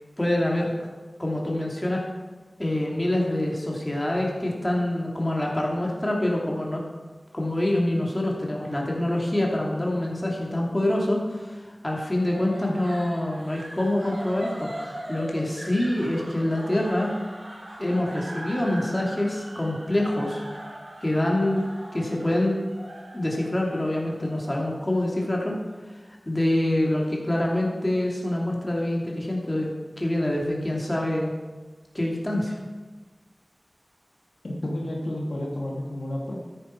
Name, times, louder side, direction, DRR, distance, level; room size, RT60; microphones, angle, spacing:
voice 1, 0.2-0.7 1.2-2.0 2.6-6.8 7.3-14.7 15.1-17.1 17.8-20.4 21.0-21.6 21.9-22.6 23.1-25.5 26.3-29.7 30.0-31.3 31.9-32.6, left 1 dB, 25° left, -2 dB, 2.7 m, -25 dB
sound 1, 12.3-25.5, right 1 dB, 90° right, 3.5 m, -40 dB
voice 2, 34.4-36.3, left 1 dB, 85° left, -2 dB, 2.4 m, -31 dB
13.0 x 10.5 x 4.5 m, 1.3 s
wide cardioid pair, 60°, 0 cm